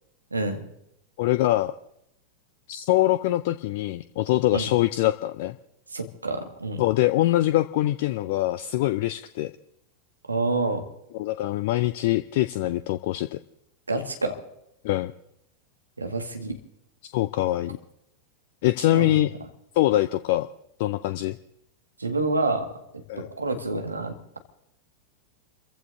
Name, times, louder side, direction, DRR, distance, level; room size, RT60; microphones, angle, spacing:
voice 1, 0.3-0.6 4.5-4.7 5.9-6.8 10.3-10.9 13.9-14.4 16.0-16.6 18.9-19.2 22.0-22.7 23.3-24.4, right 2 dB, 80° right, 4 dB, 1.9 m, -28 dB
voice 2, 1.2-1.7 2.7-5.6 6.8-9.5 11.2-13.4 14.8-15.1 17.1-17.8 18.6-19.3 19.7-20.5 20.8-21.4 23.1-23.3, left 15 dB, 50° left, 13 dB, 0.5 m, -23 dB
30.0 x 15.0 x 2.7 m, 0.79 s
figure-of-eight pair, 90°, 0 cm